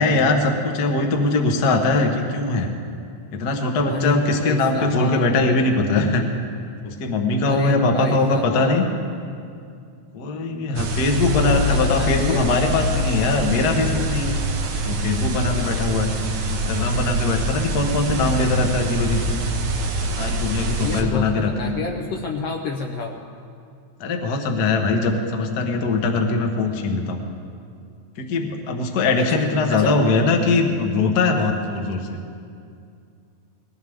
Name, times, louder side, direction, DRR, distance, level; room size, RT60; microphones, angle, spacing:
voice 1, 0.0-2.7 3.3-6.2 6.8-8.8 10.1-14.4 14.8-16.1 16.5-19.4 20.2-21.8 24.0-27.2 28.2-32.2, left 3 dB, 50° left, 3 dB, 1.2 m, -21 dB
voice 2, 3.9-5.4 7.4-8.8 11.1-12.4 20.7-23.2 29.3-29.4 29.7-29.9, left 4 dB, 70° left, 2 dB, 1.6 m, -29 dB
sound 1, 10.8-21.0, equal, 85° right, 2.8 m, -24 dB
20.0 x 16.0 x 3.6 m, 2.4 s
omnidirectional pair, 3.4 m